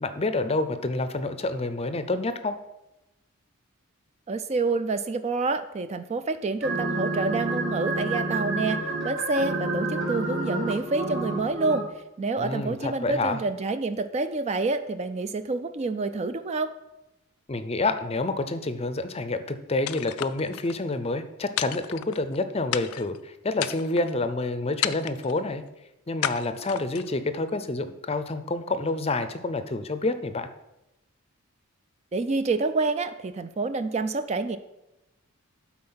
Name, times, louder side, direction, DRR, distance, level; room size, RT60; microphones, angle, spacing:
voice 1, 0.0-2.5 12.4-13.4 17.5-25.6 26.1-30.5, left 2 dB, 25° left, 11 dB, 0.6 m, -28 dB
voice 2, 4.3-11.9 12.2-16.7 32.1-34.6, right 3 dB, 30° right, 11 dB, 0.3 m, -28 dB
sound 1, 6.6-11.8, right 2 dB, 60° right, 2.6 m, -29 dB
sound 2, 19.9-20.8 21.6-22.4 22.7-23.2 23.6-24.1 24.8-25.4 26.2-27.1, left 12 dB, 80° left, 0.4 m, -32 dB
12.0 x 4.3 x 5.6 m, 0.93 s
head